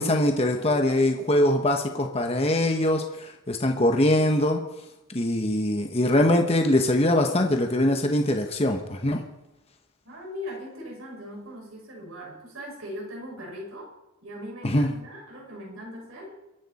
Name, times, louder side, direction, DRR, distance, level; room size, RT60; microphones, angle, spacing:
voice 1, 0.0-4.6 5.1-9.2 14.6-14.9, left 1 dB, 30° left, 4 dB, 1.1 m, -22 dB
voice 2, 10.0-13.9 14.2-16.4, equal, 90° right, -2 dB, 6.2 m, -39 dB
23.5 x 10.5 x 4.3 m, 0.93 s
head